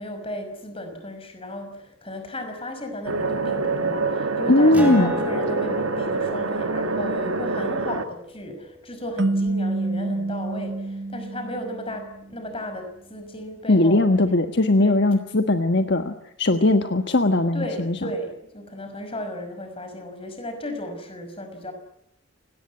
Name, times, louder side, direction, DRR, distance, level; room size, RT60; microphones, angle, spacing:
voice 1, 0.0-14.4 14.8-15.0 17.5-21.7, left 1 dB, 25° left, 7 dB, 5.7 m, -35 dB
sound 1, 3.0-8.1, right 3 dB, 90° right, 2.0 m, -26 dB
voice 2, 4.5-5.1 13.7-18.0, left 2 dB, 55° left, 7 dB, 1.4 m, -19 dB
Acoustic guitar, 4.7-9.7, equal, 5° right, 3.8 m, -35 dB
sound 2, 9.2-12.4, right 2 dB, 60° right, 1.2 m, -27 dB
29.0 x 19.0 x 9.8 m, 0.75 s
head